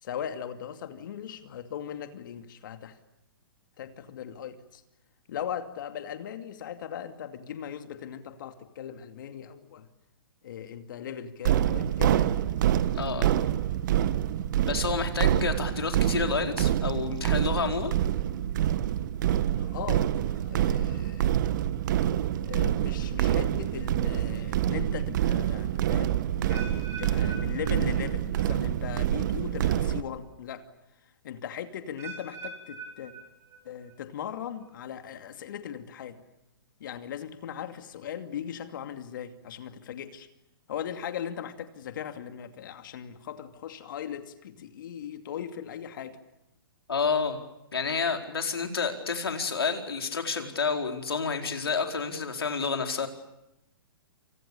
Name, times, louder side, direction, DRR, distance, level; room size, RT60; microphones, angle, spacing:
voice 1, 0.0-2.9 3.8-4.8 5.3-9.9 10.4-12.3 19.5-21.3 22.4-30.7 31.2-33.1 33.6-36.2 36.8-40.3 40.7-46.2, left 9 dB, 60° left, 8 dB, 2.5 m, -38 dB
sound 1, 11.4-30.0, right 11 dB, 55° right, 1.6 m, -26 dB
voice 2, 12.9-13.3 14.7-17.9 46.9-47.4 47.7-53.1, left 5 dB, 85° left, 4 dB, 4.5 m, -29 dB
sound 2, 26.5-28.5 28.8-29.2 29.9-30.0 32.0-33.9 34.3-34.7 35.3-35.4, right 4 dB, 25° right, 6.0 m, -44 dB
29.0 x 28.0 x 7.0 m, 0.88 s
hypercardioid pair, 130°, 12 cm